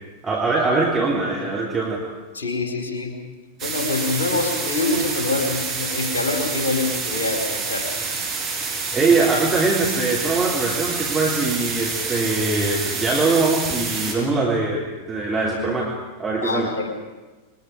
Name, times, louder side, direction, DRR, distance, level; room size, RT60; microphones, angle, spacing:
voice 1, 0.2-2.1 8.9-16.8, right 3 dB, 10° right, -4 dB, 3.4 m, -22 dB
voice 2, 2.3-3.2 3.6-7.9 16.4-16.9, left 3 dB, 65° left, 3 dB, 4.5 m, -25 dB
sound 1, 3.6-14.1, right 4 dB, 35° right, 7.0 m, -28 dB
27.0 x 23.0 x 4.9 m, 1.2 s
figure-of-eight pair, 90°, 0 cm